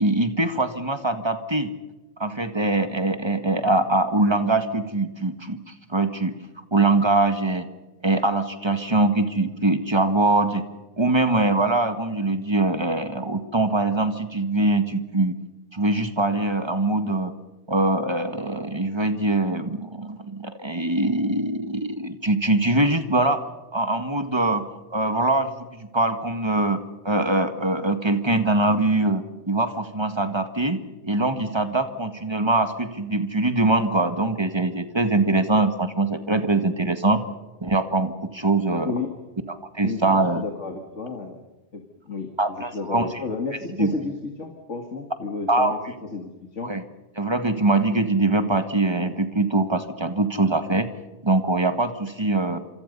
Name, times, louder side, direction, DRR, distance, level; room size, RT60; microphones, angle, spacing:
voice 1, 0.0-1.7 2.2-5.6 5.9-6.3 6.7-7.7 8.0-10.6 11.0-15.4 15.7-17.3 17.7-23.5 23.7-24.6 24.9-37.2 37.6-38.9 39.5-40.4 42.4-43.1 43.8-43.9 45.5-45.8 46.6-46.8 47.2-50.9 51.2-52.6, right 2 dB, 20° right, 8 dB, 1.8 m, -23 dB
voice 2, 39.8-41.4 41.7-41.8 42.1-46.7, left 4 dB, 80° left, 4 dB, 2.4 m, -32 dB
27.5 x 25.0 x 5.5 m, 1.1 s
omnidirectional pair, 1.2 m